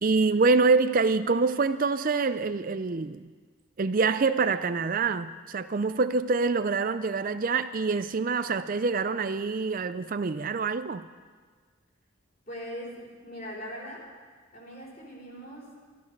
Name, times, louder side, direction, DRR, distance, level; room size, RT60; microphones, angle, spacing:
voice 1, 0.0-3.3 3.8-11.1, right 4 dB, 40° right, 11 dB, 0.4 m, -26 dB
voice 2, 12.5-14.1 14.5-15.8, equal, 40° left, -3 dB, 3.8 m, -41 dB
14.0 x 13.0 x 6.6 m, 1.5 s
head